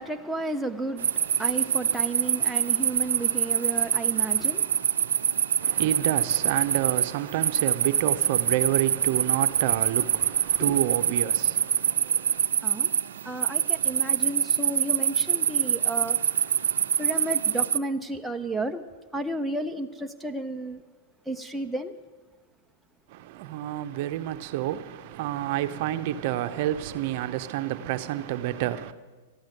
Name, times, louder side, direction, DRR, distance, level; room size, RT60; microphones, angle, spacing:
voice 1, 0.0-5.4 10.6-10.7 12.6-12.9 13.2-16.2 17.0-18.8 19.1-20.8 21.3-21.9, right 2 dB, ahead, 0.5 m, -33 dB
sound 1, 1.0-17.8, right 9 dB, 90° right, 0.5 m, -25 dB
voice 2, 5.6-12.5 23.1-28.9, right 13 dB, 45° right, 0.7 m, -29 dB
13.0 x 10.5 x 8.1 m
supercardioid pair, 155°, 0 cm